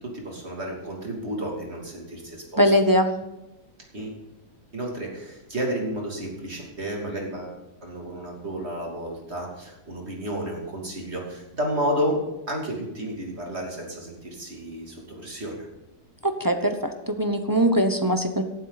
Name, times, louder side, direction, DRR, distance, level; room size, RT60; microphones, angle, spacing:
voice 1, 0.0-2.6 3.9-4.2 4.7-12.2 12.5-15.7, equal, 40° right, 0 dB, 3.2 m, -31 dB
voice 2, 2.6-3.1 16.2-18.4, equal, 20° right, 6 dB, 0.7 m, -21 dB
18.0 x 12.0 x 4.1 m, 0.97 s
omnidirectional pair, 1.8 m